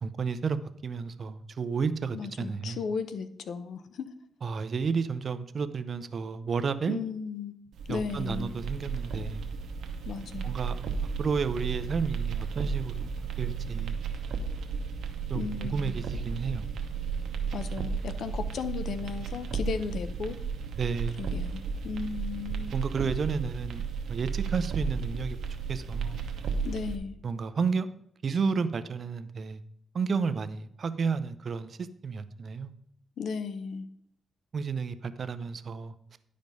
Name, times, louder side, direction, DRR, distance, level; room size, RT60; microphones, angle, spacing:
voice 1, 0.0-2.8 4.4-7.0 7.9-9.4 10.4-10.8 11.2-13.1 13.4-14.0 15.3-16.6 20.8-21.2 22.7-25.4 25.7-26.2 27.2-29.6 29.9-31.8 32.0-32.7 34.5-35.9, right 5 dB, 50° right, 12 dB, 0.5 m, -31 dB
voice 2, 2.1-4.1 6.9-7.5 7.9-8.5 10.0-10.5 15.3-15.9 17.5-20.4 21.2-22.8 26.6-27.2 33.2-33.9, left 6 dB, 70° left, 12 dB, 0.7 m, -35 dB
sound 1, 7.7-26.9, right 5 dB, 80° right, 1.0 m, -34 dB
10.5 x 5.1 x 5.3 m, 0.70 s
cardioid pair, 105°, 0 cm